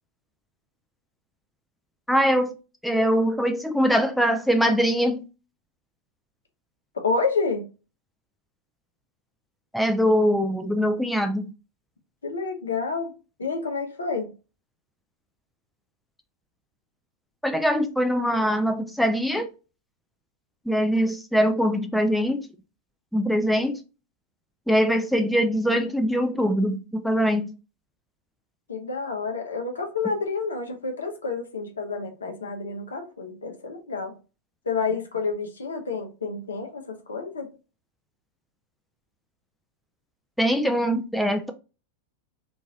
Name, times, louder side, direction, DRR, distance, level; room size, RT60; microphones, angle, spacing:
voice 1, 2.1-2.6 2.8-5.2 9.7-11.5 17.4-19.5 20.7-22.5 23.1-23.8 24.7-27.5 40.4-41.5, equal, ahead, 0.4 m, -22 dB
voice 2, 6.9-7.7 12.2-13.1 13.4-14.3 28.7-34.1 34.7-37.5, left 4 dB, 70° left, 0.8 m, -29 dB
3.0 x 2.6 x 3.6 m
figure-of-eight pair, 90°, 0 cm